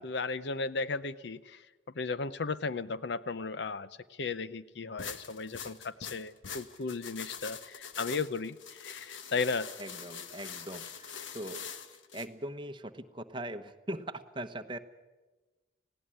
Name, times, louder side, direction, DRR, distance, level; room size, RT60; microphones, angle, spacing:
voice 1, 0.0-1.6 2.0-3.9 4.2-8.6 8.8-9.7, left 4 dB, 65° left, 15 dB, 0.6 m, -35 dB
sound 1, 5.0-12.3, left 7 dB, 80° left, 1.3 m, -44 dB
voice 2, 9.8-11.7 12.1-14.8, right 1 dB, 25° right, 8 dB, 1.0 m, -41 dB
19.0 x 17.0 x 10.0 m, 1.2 s
head